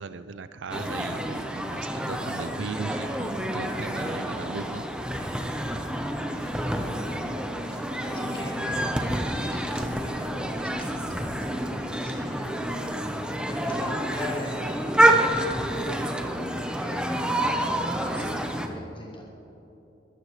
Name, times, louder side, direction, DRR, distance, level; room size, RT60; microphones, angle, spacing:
voice 1, 0.0-4.8, right 4 dB, 80° right, 12 dB, 0.5 m, -37 dB
sound 1, 0.7-18.7, right 1 dB, 5° right, 0.8 m, -28 dB
voice 2, 6.4-7.2 7.7-12.5 13.6-19.2, left 1 dB, 30° left, -4 dB, 2.9 m, -41 dB
23.0 x 14.0 x 3.2 m, 2.9 s
head